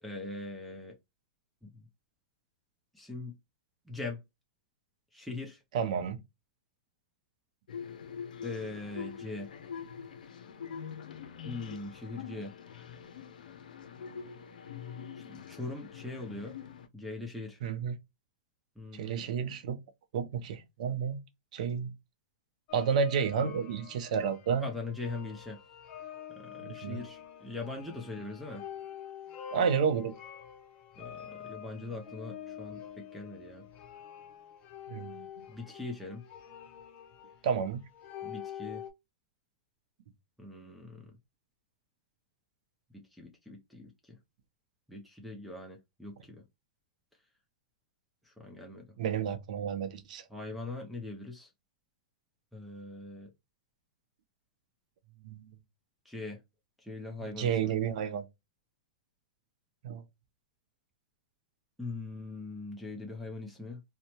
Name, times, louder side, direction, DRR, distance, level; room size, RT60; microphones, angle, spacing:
voice 1, 0.0-0.9 2.9-3.3 3.9-4.2 5.1-5.6 8.4-9.5 11.4-12.5 15.3-16.5 16.9-17.6 18.8-19.4 24.6-25.6 26.3-28.6 31.0-33.6 35.5-36.2 38.2-38.8 40.4-41.1 42.9-44.2 44.9-46.4 48.3-48.8 50.3-51.5 52.5-53.3 56.1-56.4 56.8-57.7 61.8-63.8, left 2 dB, ahead, 0.6 m, -41 dB
voice 2, 5.7-6.2 17.6-18.0 18.9-19.8 20.1-21.2 21.5-21.9 22.7-24.7 26.6-27.0 29.5-30.1 34.9-35.3 37.4-37.8 49.0-50.2 55.2-55.5 57.4-58.2 59.8-60.0, right 6 dB, 65° right, 0.6 m, -31 dB
sound 1, 7.7-16.9, left 7 dB, 85° left, 0.5 m, -44 dB
sound 2, 22.7-38.9, left 9 dB, 35° left, 0.7 m, -46 dB
2.7 x 2.2 x 2.9 m
hypercardioid pair, 135°, 4 cm